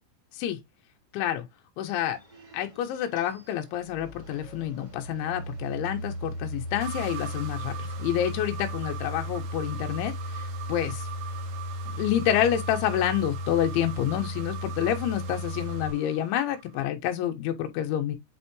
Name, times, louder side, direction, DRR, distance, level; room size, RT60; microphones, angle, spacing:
voice 1, 1.1-1.5 1.8-2.2 2.5-11.1 11.9-18.2, left 11 dB, 75° left, 3.5 m, -28 dB
sound 1, 1.9-15.9, left 1 dB, 40° right, 0.5 m, -36 dB
sound 2, 6.8-16.8, right 10 dB, 80° right, 2.2 m, -42 dB
8.3 x 4.2 x 3.1 m
omnidirectional pair, 5.8 m